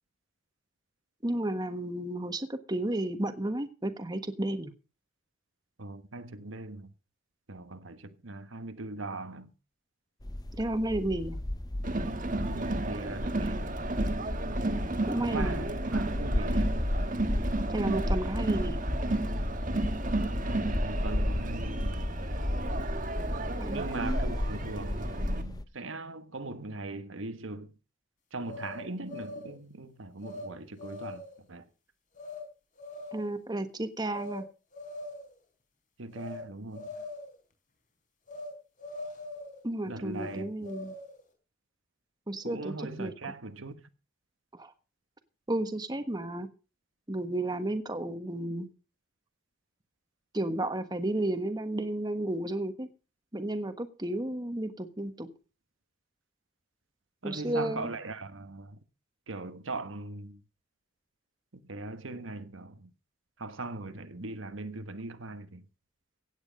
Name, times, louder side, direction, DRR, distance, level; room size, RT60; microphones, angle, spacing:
voice 1, 1.2-4.7 10.6-11.4 15.0-15.6 17.7-18.8 23.6-24.2 33.1-34.4 39.6-40.9 42.3-43.1 44.5-44.7 45.5-46.5 47.1-48.7 50.3-52.9 53.3-55.3 57.2-58.0, right 1 dB, 20° right, 1.4 m, -32 dB
voice 2, 5.8-6.9 7.5-9.5 12.5-13.7 15.2-16.8 20.4-22.2 23.7-27.7 28.3-31.2 31.5-31.6 36.0-36.9 39.8-40.5 42.4-43.8 57.2-58.8 59.3-60.4 61.7-62.9 63.4-65.6, right 2 dB, 90° right, 1.4 m, -40 dB
sound 1, 10.2-25.6, left 1 dB, 20° left, 0.8 m, -33 dB
Crowd, 11.8-25.4, right 2 dB, 45° right, 1.5 m, -34 dB
sound 2, 28.4-29.6 30.2-30.5 30.8-31.4 32.2-32.4 32.8-33.3 34.1-34.4 34.7-35.4 36.1-36.4 36.7-37.3 38.3-38.5 38.8-39.6 40.1-41.2, left 2 dB, 40° left, 4.5 m, -42 dB
16.5 x 9.7 x 5.2 m
head